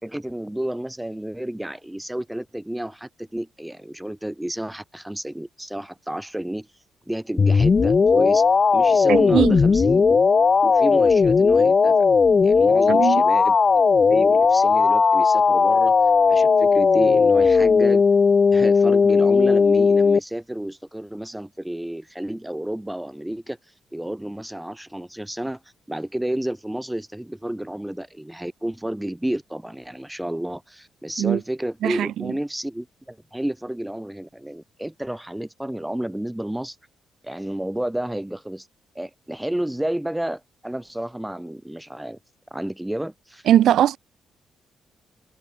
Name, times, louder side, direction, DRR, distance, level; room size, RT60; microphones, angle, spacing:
voice 1, 0.0-6.7 7.0-8.4 8.7-10.2 10.6-12.1 12.4-13.6 14.0-15.9 16.3-18.1 18.5-23.6 23.9-25.6 25.9-36.8 37.2-38.7 38.9-42.2 42.5-43.4, right 1 dB, 5° right, 1.7 m, -31 dB
sound 1, 7.4-20.2, left 5 dB, 35° left, 0.3 m, -17 dB
voice 2, 9.1-9.5 12.9-13.2 31.2-31.4 31.8-32.1 43.5-44.0, right 11 dB, 75° right, 0.4 m, -19 dB
cardioid pair, 105°, 0 cm